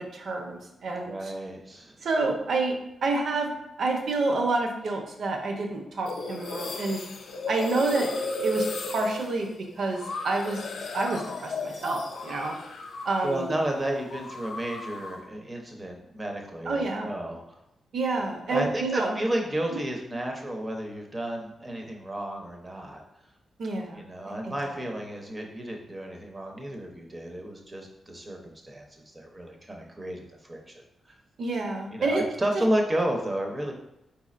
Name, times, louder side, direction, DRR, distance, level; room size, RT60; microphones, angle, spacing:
voice 1, 0.0-1.3 2.0-2.7 3.0-3.5 3.8-7.0 7.5-8.1 8.4-9.5 9.8-10.6 10.9-12.5 13.0-13.5 16.7-17.1 17.9-19.2 19.7-19.8 23.6-24.8 31.4-32.3 32.5-32.6, right 3 dB, 60° right, 2 dB, 0.7 m, -28 dB
voice 2, 1.0-2.0 13.2-17.4 18.5-23.0 23.9-28.8 29.1-30.8 31.9-33.7, right 1 dB, 20° right, 2 dB, 0.7 m, -32 dB
sound 1, 6.1-13.5 13.7-15.3, left 2 dB, 65° left, 0.4 m, -35 dB
4.7 x 4.2 x 2.5 m, 0.87 s
wide cardioid pair, 150°, 0 cm